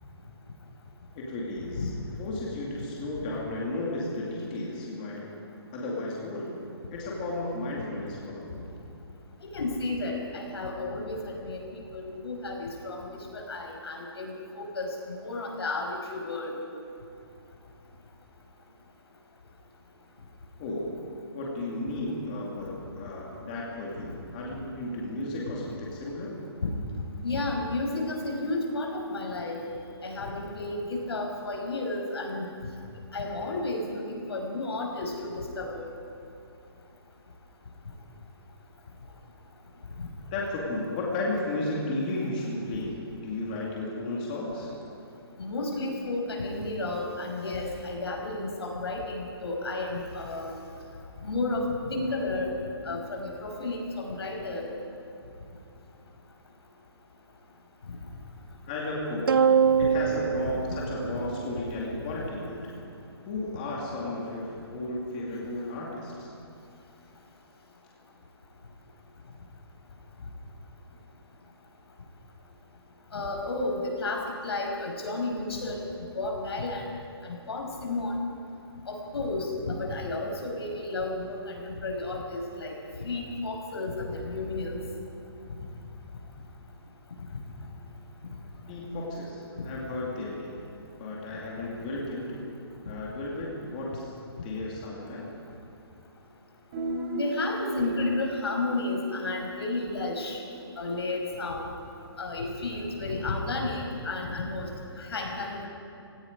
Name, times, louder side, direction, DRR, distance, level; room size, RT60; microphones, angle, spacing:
voice 1, 1.1-1.9 2.2-5.3 5.7-6.5 6.9-8.5 20.6-20.9 21.3-26.3 40.3-42.9 43.2-44.7 58.7-62.7 63.3-66.3 88.7-90.6 91.0-92.5 92.8-94.1 94.4-95.2, left 2 dB, 20° left, -4 dB, 2.2 m, -34 dB
voice 2, 9.4-13.1 13.3-16.5 27.2-29.6 30.0-32.5 33.1-34.0 34.3-35.9 40.0-40.1 45.4-50.5 51.2-52.5 52.9-54.7 59.8-59.9 73.1-75.8 76.1-76.8 77.2-78.1 78.9-82.7 83.0-84.8 97.1-100.4 100.8-101.7 102.2-104.7 105.0-105.7, left 2 dB, 75° left, 1 dB, 5.7 m, -32 dB
sound 1, 59.3-61.9, right 7 dB, 60° right, 0.6 m, -24 dB
Guitar, 96.7-100.4, right 1 dB, 25° right, 5.3 m, -35 dB
29.0 x 17.5 x 5.2 m, 2.6 s
hypercardioid pair, 180°, 13 cm